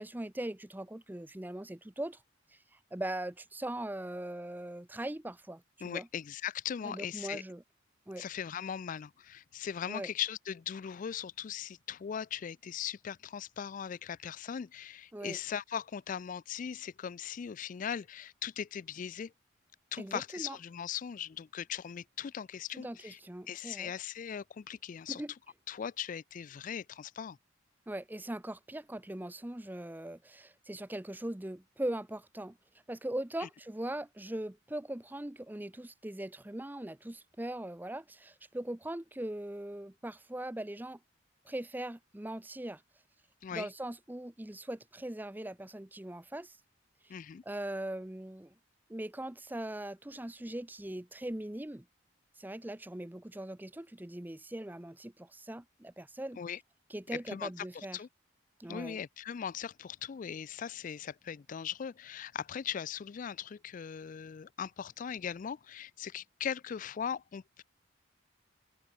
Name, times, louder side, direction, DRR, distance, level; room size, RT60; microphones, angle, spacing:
voice 1, 0.0-2.2 2.9-6.1 6.8-7.6 8.1-8.2 9.9-10.1 15.1-15.4 20.0-20.6 22.7-23.9 25.1-25.3 27.9-32.6 32.9-41.0 41.5-42.8 43.5-46.6 47.0-47.2 47.5-48.5 48.9-51.9 52.4-56.4 56.9-58.0 58.6-59.0, right 1 dB, 10° right, 0.6 m, -40 dB
voice 2, 5.8-7.4 8.2-19.3 19.9-23.2 23.5-25.2 25.7-27.4 33.4-33.5 43.4-43.7 47.1-47.4 56.4-56.6 57.1-58.1 58.7-67.6, left 8 dB, 40° left, 0.3 m, -39 dB
head